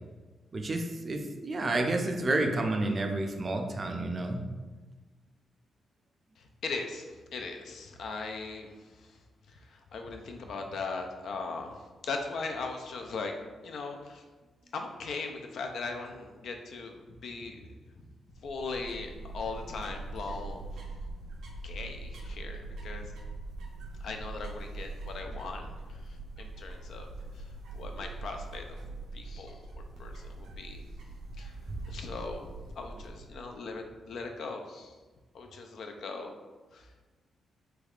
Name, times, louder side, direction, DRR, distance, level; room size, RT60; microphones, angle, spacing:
voice 1, 0.5-4.4, right 2 dB, 35° right, 4 dB, 0.4 m, -30 dB
voice 2, 6.4-9.2 9.5-13.4 13.6-14.2 14.7-18.0 18.4-20.8 21.6-23.1 24.0-27.1 27.3-27.5 27.7-28.8 29.1-30.8 31.4-31.5 31.9-32.5 32.8-34.9 35.3-36.4 36.7-36.9, left 4 dB, 70° left, 4 dB, 0.4 m, -39 dB
sound 1, 18.3-33.6, right 2 dB, 90° right, 0.5 m, -42 dB
3.4 x 3.1 x 2.4 m, 1.3 s
cardioid pair, 115°, 0 cm